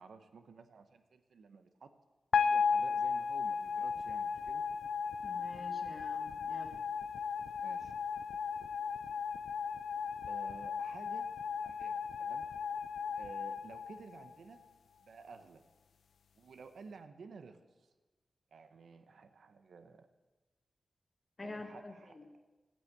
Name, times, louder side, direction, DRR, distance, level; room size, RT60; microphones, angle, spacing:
voice 1, 0.0-1.9 2.3-4.6 7.6-7.9 10.3-11.3 11.6-12.5 13.2-14.6 15.0-15.6 16.3-17.6 18.5-20.1 21.4-22.2, right 4 dB, 80° right, 8 dB, 1.1 m, -53 dB
sound 1, 2.3-14.6, left 6 dB, 85° left, 0.4 m, -35 dB
voice 2, 5.2-6.8 21.4-22.2, left 2 dB, 35° left, 3 dB, 1.5 m, -48 dB
16.0 x 9.1 x 8.0 m, 1.2 s
wide cardioid pair, 95°, 0 cm